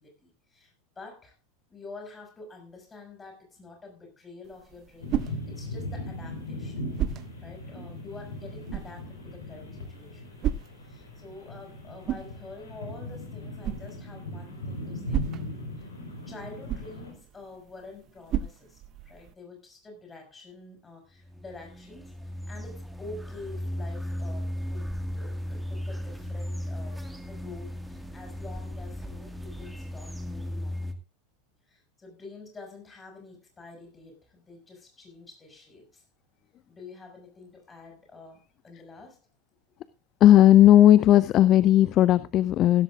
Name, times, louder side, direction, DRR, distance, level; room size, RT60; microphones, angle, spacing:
voice 1, 0.0-1.3 1.7-6.9 7.4-10.3 10.8-15.3 15.8-15.9 16.3-30.9 31.7-36.0 36.7-39.2, left 3 dB, 20° left, 5.9 m, -47 dB
sound 1, 4.4-19.3, right 10 dB, 40° right, 0.7 m, -37 dB
sound 2, 5.0-17.1, left 1 dB, 75° left, 4.5 m, -39 dB
Turbo-prop airplane overhead, 21.2-30.9, left 1 dB, 5° right, 1.8 m, -36 dB
voice 2, 40.2-42.8, left 12 dB, 40° left, 0.5 m, -16 dB
15.5 x 13.5 x 2.4 m
figure-of-eight pair, 85°, 0 cm